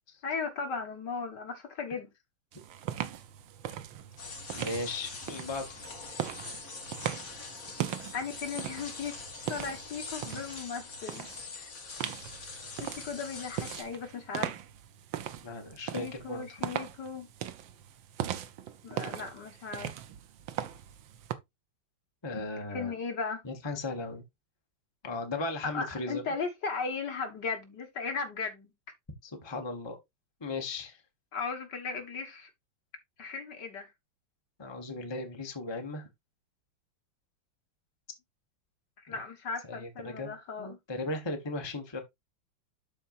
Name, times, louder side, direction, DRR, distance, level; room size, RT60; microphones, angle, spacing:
voice 1, 0.2-2.1 8.1-9.2 9.5-11.3 11.6-11.7 12.8-14.6 15.9-17.3 18.8-20.0 22.7-23.4 25.6-28.7 31.3-32.5 33.2-33.9 39.0-40.8, left 5 dB, 60° left, 2.3 m, -36 dB
sound 1, 2.5-10.6 11.1-11.4 12.0-21.3, right 11 dB, 80° right, 1.6 m, -39 dB
sound 2, 4.2-13.8, left 3 dB, 45° left, 2.2 m, -43 dB
voice 2, 4.5-5.8 15.4-16.6 22.2-22.9 23.4-24.2 25.0-26.2 29.2-30.0 30.4-31.0 34.6-36.1 39.1-39.2 39.6-42.0, left 2 dB, 15° left, 1.3 m, -37 dB
12.5 x 4.5 x 2.6 m
omnidirectional pair, 2.1 m